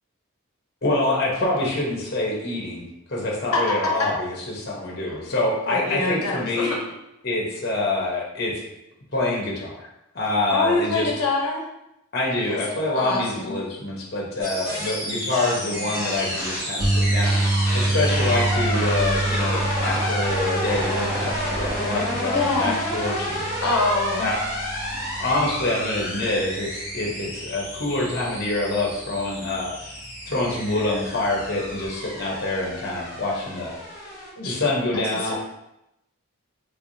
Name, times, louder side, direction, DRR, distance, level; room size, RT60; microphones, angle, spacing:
voice 1, 0.8-2.8 3.1-6.7 7.2-8.6 9.1-9.9 10.1-11.1 12.1-23.4 24.2-24.4 25.2-30.0 30.3-33.7 34.4-35.3, left 2 dB, 45° left, -3 dB, 0.9 m, -26 dB
voice 2, 5.7-6.8 10.5-11.6 12.5-12.6 13.0-13.6 22.3-22.8 23.6-24.3 34.4-34.6 35.0-35.3, left 3 dB, 90° left, -2 dB, 0.7 m, -25 dB
sound 1, 14.4-34.3, equal, 20° right, 1.2 m, -30 dB
sound 2, 16.8-29.1 29.4-29.7 31.8-31.9, right 2 dB, 60° right, 1.5 m, -28 dB
3.3 x 3.3 x 2.6 m, 0.87 s
head